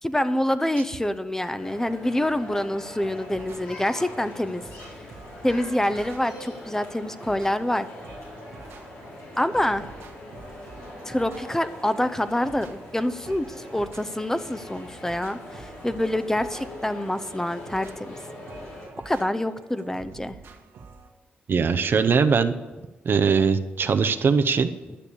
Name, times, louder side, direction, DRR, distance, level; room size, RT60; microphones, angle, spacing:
voice 1, 0.0-4.6 5.4-7.9 9.4-9.9 11.1-18.2 19.0-20.4 24.9-25.0, left 1 dB, 10° left, 12 dB, 0.7 m, -26 dB
sound 1, 1.5-18.9, left 1 dB, 80° left, 3.3 m, -42 dB
sound 2, 3.0-21.1, right 4 dB, 80° right, 1.5 m, -48 dB
voice 2, 21.5-22.5 23.0-24.7, right 5 dB, 55° right, 9 dB, 0.7 m, -21 dB
12.0 x 6.8 x 7.0 m, 1.2 s
cardioid pair, 60°, 4 cm